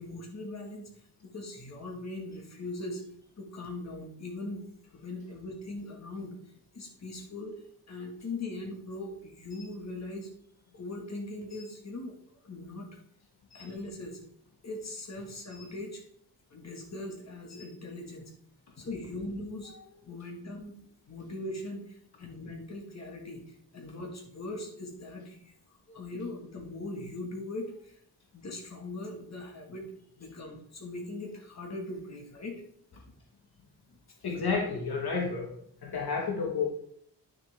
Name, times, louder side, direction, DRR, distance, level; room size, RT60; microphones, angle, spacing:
voice 1, 0.0-3.0 3.4-4.7 4.9-6.3 6.7-10.3 10.7-12.2 12.4-13.0 13.5-14.2 14.6-16.0 16.5-18.3 18.8-20.8 21.1-28.0 28.3-29.9 30.2-32.6 32.9-33.0 33.9-34.0, left 2 dB, 40° left, 1 dB, 1.6 m, -40 dB
voice 2, 34.2-35.5 35.8-36.7, left 5 dB, 60° left, 0 dB, 1.3 m, -30 dB
9.6 x 6.4 x 3.4 m, 0.67 s
wide cardioid pair, 160°, 41 cm